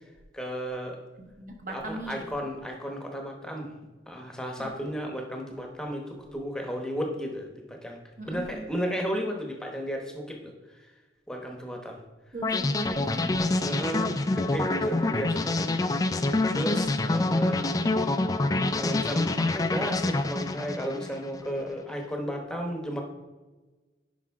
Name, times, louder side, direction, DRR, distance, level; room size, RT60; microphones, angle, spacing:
voice 1, 0.3-1.0 1.7-3.7 4.1-8.0 8.2-10.9 11.3-12.0 13.6-15.7 16.5-17.7 18.7-23.0, equal, 5° left, 2 dB, 0.9 m, -34 dB
voice 2, 1.2-2.2 4.6-4.9 8.2-8.7 12.3-13.4 14.9-15.2, right 1 dB, 45° right, 3 dB, 1.2 m, -39 dB
sound 1, 12.4-21.5, left 2 dB, 20° left, 0.3 m, -26 dB
10.5 x 4.9 x 3.6 m, 1.2 s
head